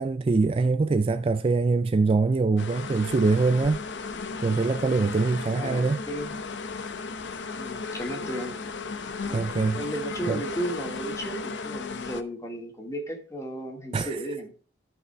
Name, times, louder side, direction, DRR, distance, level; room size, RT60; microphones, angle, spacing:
voice 1, 0.0-3.8 4.4-6.0 9.3-9.8 10.3-10.4 13.9-14.1, right 3 dB, 30° right, 0.3 m, -23 dB
sound 1, 2.6-12.2, left 4 dB, 75° left, 0.8 m, -35 dB
voice 2, 5.6-6.3 7.5-8.6 9.2-9.5 9.7-14.5, right 1 dB, 15° left, 1.7 m, -34 dB
13.5 x 5.5 x 3.4 m
head